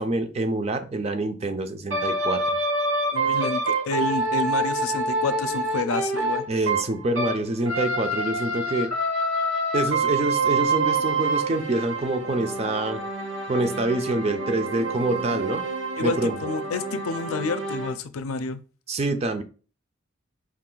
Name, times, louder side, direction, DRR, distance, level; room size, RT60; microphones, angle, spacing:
voice 1, 0.0-2.4 6.5-8.9 9.7-13.0 13.5-15.6 16.0-16.4 18.9-19.4, right 2 dB, 30° right, 8 dB, 0.4 m, -26 dB
sound 1, 1.9-7.4 7.6-17.9, right 2 dB, 70° right, 1.4 m, -27 dB
voice 2, 3.1-6.4 16.0-18.6, left 3 dB, 85° left, 11 dB, 0.5 m, -29 dB
4.7 x 2.5 x 3.8 m, 0.36 s
head